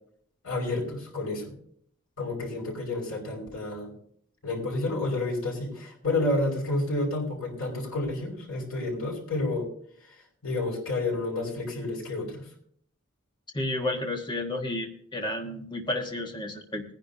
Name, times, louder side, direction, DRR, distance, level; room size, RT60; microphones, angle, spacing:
voice 1, 0.4-1.5 2.2-3.9 4.4-9.7 10.4-12.4, left 2 dB, 85° left, -3 dB, 5.5 m, -30 dB
voice 2, 13.5-16.8, left 1 dB, 20° left, 3 dB, 1.4 m, -31 dB
20.0 x 10.5 x 2.8 m, 0.64 s
head